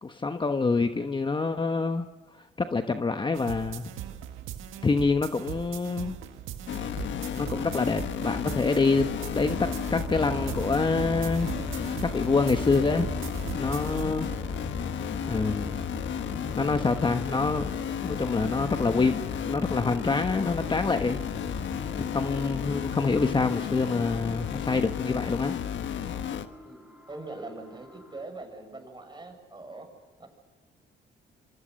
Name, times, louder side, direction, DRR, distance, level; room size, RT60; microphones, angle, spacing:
voice 1, 0.0-2.1 2.3-3.9 4.8-6.2 7.4-11.5 12.0-13.1 13.5-14.3 15.3-15.8 16.6-17.7 18.0-21.2 22.1-25.6, left 4 dB, 25° left, 7 dB, 1.2 m, -26 dB
sound 1, 3.3-14.4, right 10 dB, 90° right, 1.8 m, -40 dB
sound 2, 6.7-26.5, left 9 dB, 70° left, 1.5 m, -33 dB
sound 3, 9.4-28.2, right 1 dB, 5° right, 3.7 m, -41 dB
voice 2, 26.6-29.9 30.2-30.3, right 2 dB, 20° right, 5 dB, 7.0 m, -42 dB
27.0 x 24.5 x 6.6 m, 1.3 s
cardioid pair, 90°, 20 cm